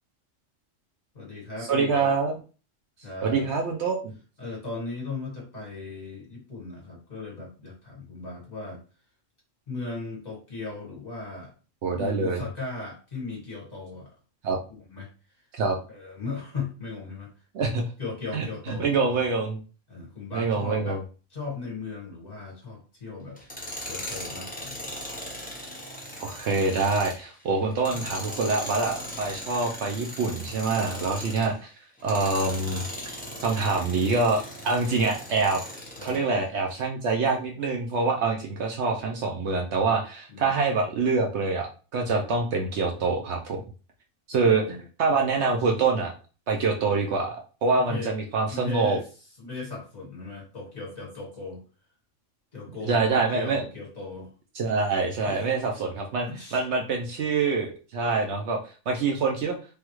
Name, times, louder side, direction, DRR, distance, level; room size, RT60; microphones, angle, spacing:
voice 1, 1.1-2.1 3.0-3.5 4.4-8.8 9.7-11.5 11.9-14.1 14.7-15.1 15.4-15.5 15.9-17.4 18.0-19.2 19.9-21.0 21.3-23.4 23.8-24.9 27.9-28.0 36.0-36.3 40.3-40.6 44.3-44.8 47.8-48.2 48.5-49.1 49.4-51.6 52.5-54.3 55.3-55.5 56.2-56.6, left 3 dB, 35° left, -3 dB, 1.5 m, -37 dB
voice 2, 1.7-2.3 3.2-4.1 11.8-12.4 14.4-14.6 15.5-15.8 17.5-17.8 18.3-19.6 20.3-21.0 26.2-31.7 32.0-32.8 33.4-35.6 36.0-43.6 44.3-44.6 45.0-46.1 46.5-49.0 52.8-53.6 54.6-59.6, right 4 dB, 65° right, 2 dB, 0.8 m, -25 dB
Tools, 23.4-31.6 32.0-36.2, left 1 dB, 10° left, 0.8 m, -38 dB
3.3 x 2.3 x 3.0 m, 0.35 s
omnidirectional pair, 1.3 m